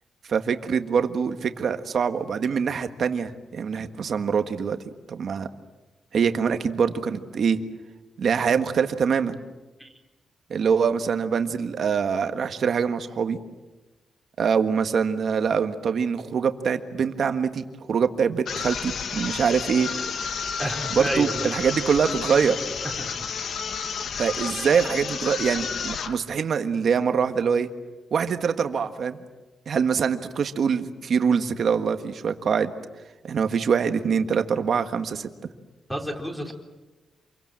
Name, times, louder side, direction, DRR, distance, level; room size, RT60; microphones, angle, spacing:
voice 1, 0.3-4.8 5.1-5.5 6.1-7.6 8.2-9.4 10.5-13.4 14.4-19.9 20.9-22.6 24.2-27.7 28.1-29.2 29.7-32.7 33.2-35.3, right 6 dB, 55° right, 8 dB, 1.6 m, -24 dB
sound 1, 18.4-26.2, left 6 dB, 60° left, 1.5 m, -31 dB
voice 2, 20.6-21.6 23.0-23.3 35.9-36.5, equal, 5° left, 2 dB, 3.8 m, -30 dB
27.5 x 23.0 x 7.6 m, 1.2 s
wide cardioid pair, 150°, 0 cm